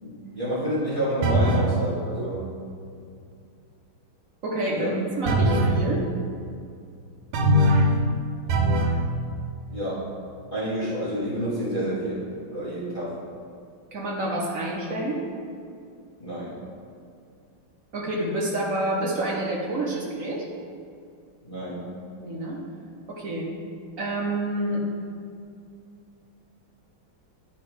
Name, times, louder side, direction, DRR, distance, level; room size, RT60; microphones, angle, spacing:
voice 1, 0.0-2.4 4.7-5.0 9.7-10.1 10.5-13.2 16.2-16.6 21.5-21.8, equal, 25° left, -9 dB, 1.8 m, -29 dB
sound 1, 1.2-1.7 5.3-5.8 7.3-8.0 8.5-9.0, right 1 dB, 75° right, 1.5 m, -20 dB
voice 2, 4.4-6.1 13.9-15.2 17.9-20.5 22.2-22.6 23.1-23.5 24.0-24.8, right 1 dB, 50° right, -2 dB, 1.0 m, -28 dB
10.5 x 3.6 x 5.0 m, 2.4 s
omnidirectional pair, 2.3 m